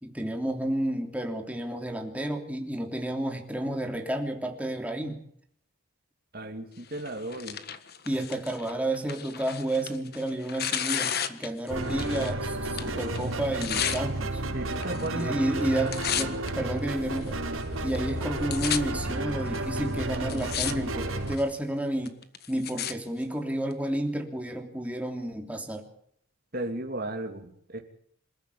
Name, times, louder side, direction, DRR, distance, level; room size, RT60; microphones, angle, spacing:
voice 1, 0.0-5.2 8.0-14.4 15.1-17.4 17.8-22.2 22.5-25.9, right 1 dB, 5° right, 3 dB, 3.1 m, -31 dB
voice 2, 6.3-7.6 14.5-15.3 15.7-15.9 26.5-27.8, right 1 dB, 45° right, 3 dB, 3.0 m, -34 dB
Tearing, 6.9-12.4 12.6-14.0 14.7-15.2 15.5-16.5 17.1-17.2 17.9-18.0 18.2-18.8 19.5-19.6 20.1-20.7 21.0-21.5 22.0-22.9 23.7-23.8, left 9 dB, 45° left, 1.6 m, -33 dB
sound 1, 11.7-21.4, right 2 dB, 70° right, 4.5 m, -32 dB
27.0 x 14.5 x 8.6 m, 0.67 s
head